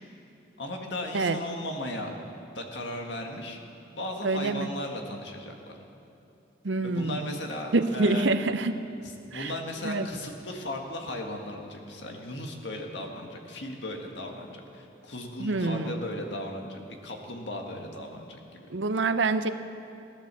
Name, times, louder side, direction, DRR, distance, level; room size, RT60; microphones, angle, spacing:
voice 1, 0.6-2.1 2.5-3.6 3.9-5.8 6.8-8.3 9.0-18.7, left 1 dB, 65° left, 2 dB, 1.8 m, -36 dB
voice 2, 4.2-4.7 6.6-7.4 7.7-8.8 9.3-9.5 9.8-10.1 15.4-16.0 18.7-19.5, right 3 dB, 70° right, 10 dB, 0.7 m, -26 dB
17.0 x 11.5 x 6.9 m, 2.7 s
head